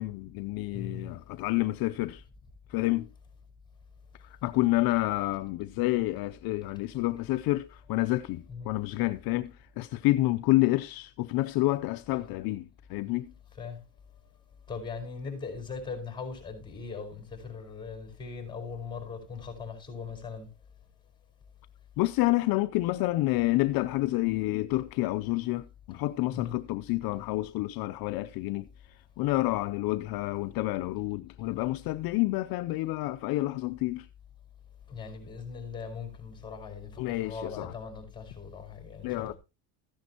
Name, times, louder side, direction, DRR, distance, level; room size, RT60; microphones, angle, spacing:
voice 1, 0.0-2.2 2.7-3.1 4.2-9.5 9.8-12.6 12.9-13.3 22.0-28.7 29.2-34.1 37.0-37.7 39.0-39.3, left 18 dB, 60° left, 0.6 m, -28 dB
voice 2, 0.7-1.1 8.5-8.7 13.5-13.8 14.7-20.5 25.9-26.0 26.3-26.6 34.9-39.3, left 5 dB, 10° left, 4.8 m, -40 dB
14.5 x 10.5 x 2.9 m
cardioid pair, 140°, 40 cm